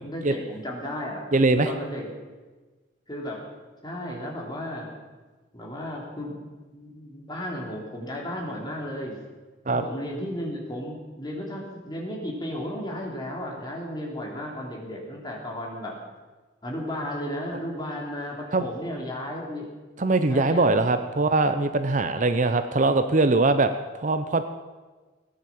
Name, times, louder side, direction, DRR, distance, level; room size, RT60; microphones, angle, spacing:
voice 1, 0.0-1.3 1.6-2.1 3.1-3.5 3.8-4.9 5.5-9.2 9.7-16.0 16.6-19.7 20.3-20.8, equal, 20° left, -1 dB, 3.2 m, -34 dB
voice 2, 1.3-1.7 9.7-9.8 18.5-18.7 20.0-24.4, right 3 dB, 40° right, 9 dB, 0.7 m, -22 dB
18.0 x 10.5 x 7.2 m, 1.3 s
head